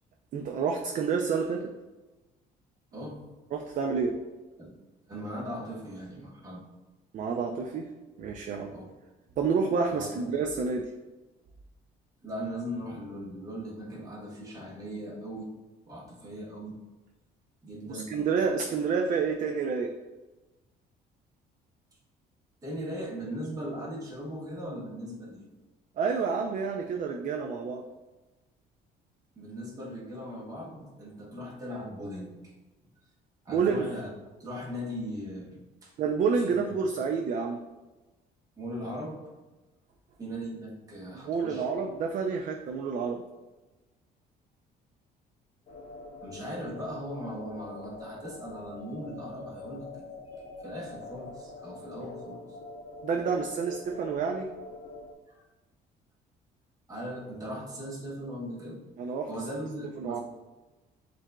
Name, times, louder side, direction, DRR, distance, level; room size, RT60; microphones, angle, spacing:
voice 1, 0.3-1.7 3.5-4.2 7.1-7.9 8.2-8.7 9.4-10.9 17.9-19.9 26.0-27.8 33.5-33.9 36.0-37.6 41.2-43.2 53.0-54.5 59.0-59.3 59.6-59.7 60.0-60.2, right 5 dB, 50° right, 2 dB, 0.4 m, -29 dB
voice 2, 2.9-3.3 4.6-4.8 5.1-6.6 8.7-8.9 9.9-10.1 12.2-15.5 15.9-16.8 17.6-18.1 22.6-25.5 29.3-32.5 33.4-34.1 34.4-35.9 36.5-36.7 38.6-39.2 40.2-41.8 46.2-50.2 50.6-52.6 55.3-55.4 56.9-58.8 59.3-60.2, equal, 20° right, -4 dB, 1.1 m, -39 dB
sound 1, 45.7-55.1, left 3 dB, 40° left, 0.6 m, -44 dB
7.2 x 2.6 x 2.2 m, 1.1 s
cardioid pair, 110°, 17 cm